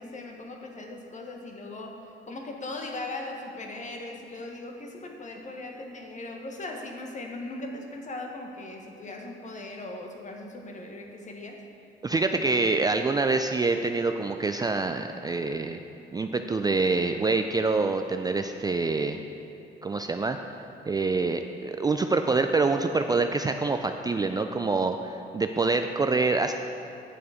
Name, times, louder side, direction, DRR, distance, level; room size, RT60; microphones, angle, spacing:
voice 1, 0.0-2.0 2.3-11.6, left 2 dB, 40° left, 2 dB, 1.3 m, -39 dB
voice 2, 12.0-15.8 16.1-19.2 19.8-20.4 20.9-26.5, right 3 dB, 20° right, 6 dB, 0.3 m, -26 dB
9.0 x 6.8 x 5.0 m, 2.9 s
cardioid pair, 90°, 20 cm